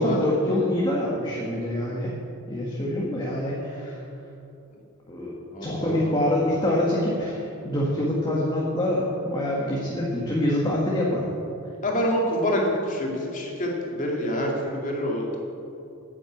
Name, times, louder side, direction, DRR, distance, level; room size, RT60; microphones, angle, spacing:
voice 1, 0.0-2.2 2.5-4.0 5.1-5.3 5.6-11.3, left 1 dB, 20° left, -4 dB, 1.6 m, -25 dB
voice 2, 5.5-6.2 11.8-15.4, equal, 35° left, -1 dB, 2.5 m, -26 dB
9.9 x 9.0 x 8.5 m, 2.8 s
head